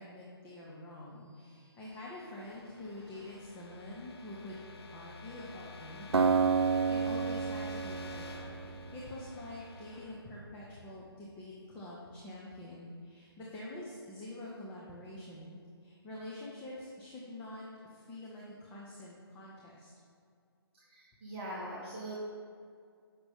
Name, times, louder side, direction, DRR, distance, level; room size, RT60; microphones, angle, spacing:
voice 1, 0.0-4.6 4.9-8.3 8.6-17.7 17.9-19.9, left 1 dB, 10° left, -5 dB, 0.7 m, -46 dB
sound 1, 1.5-11.3, left 3 dB, 75° left, 1.0 m, -50 dB
Acoustic guitar, 6.1-9.3, right 5 dB, 80° right, 0.4 m, -30 dB
voice 2, 20.9-22.2, right 1 dB, 25° right, -6 dB, 1.1 m, -42 dB
7.8 x 5.8 x 3.6 m, 2.3 s
figure-of-eight pair, 140°, 14 cm